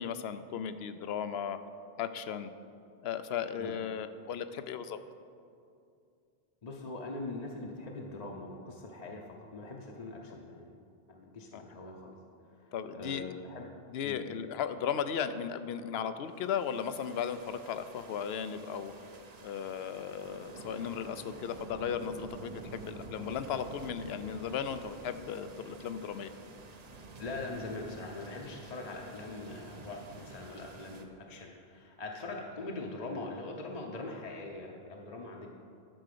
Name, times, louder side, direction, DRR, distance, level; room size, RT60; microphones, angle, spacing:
voice 1, 0.0-1.6 2.0-2.5 3.0-5.0 11.5-11.6 12.7-13.2 13.9-18.9 19.4-26.3, left 8 dB, 75° left, 11 dB, 0.8 m, -36 dB
voice 2, 6.6-10.8 11.1-12.1 12.5-13.7 14.0-14.2 27.2-35.5, left 2 dB, 40° left, 0 dB, 0.8 m, -42 dB
sound 1, 16.3-31.0, right 3 dB, 45° right, 0.7 m, -49 dB
11.5 x 4.8 x 6.7 m, 2.5 s
omnidirectional pair, 1.1 m